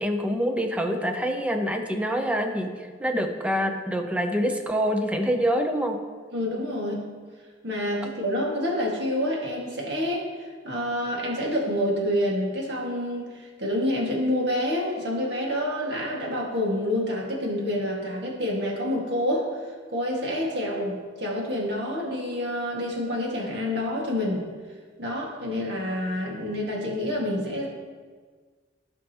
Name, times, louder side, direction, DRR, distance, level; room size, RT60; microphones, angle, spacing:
voice 1, 0.0-2.7 3.0-6.0, equal, 5° right, 5 dB, 0.6 m, -26 dB
voice 2, 6.3-7.0 7.6-19.5 19.9-24.5 25.0-27.7, left 1 dB, 65° right, -3 dB, 2.0 m, -28 dB
15.5 x 5.4 x 3.0 m, 1.6 s
head